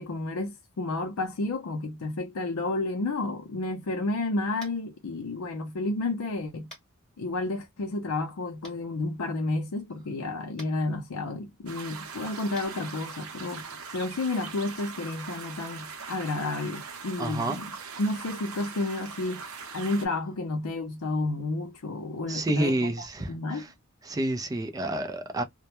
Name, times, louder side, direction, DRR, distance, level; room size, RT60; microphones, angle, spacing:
voice 1, 0.0-6.7 7.2-13.6 13.9-17.7 18.0-19.4 19.7-23.7, left 2 dB, 80° left, 0.5 m, -31 dB
Tap, 4.6-4.8 6.7-6.9 8.6-8.7 10.5-10.7 12.5-12.7, equal, 5° left, 1.1 m, -46 dB
sound 1, 11.7-20.1, right 5 dB, 80° right, 0.7 m, -41 dB
voice 2, 17.2-17.6 22.3-23.7 24.0-25.4, right 1 dB, 15° right, 0.4 m, -29 dB
2.2 x 2.1 x 2.8 m
head